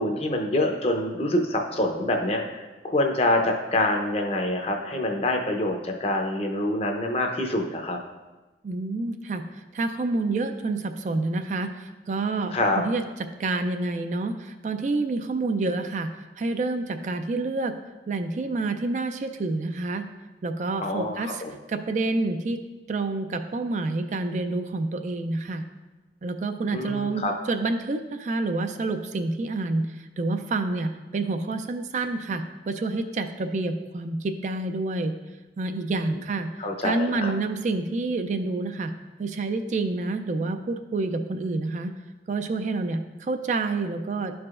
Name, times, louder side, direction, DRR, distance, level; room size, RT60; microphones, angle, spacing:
voice 1, 0.0-8.0 12.5-12.8 20.8-21.5 26.7-27.3 36.6-37.3, left 1 dB, 35° left, 3 dB, 0.7 m, -26 dB
voice 2, 8.6-9.4 9.7-13.0 13.4-16.1 16.4-17.7 18.1-20.0 20.4-21.4 21.7-22.6 22.9-25.6 26.2-35.1 35.6-36.5 36.8-38.9 39.2-41.9 42.3-44.3, right 3 dB, 40° right, 7 dB, 0.3 m, -28 dB
11.5 x 4.7 x 2.4 m, 1.2 s
head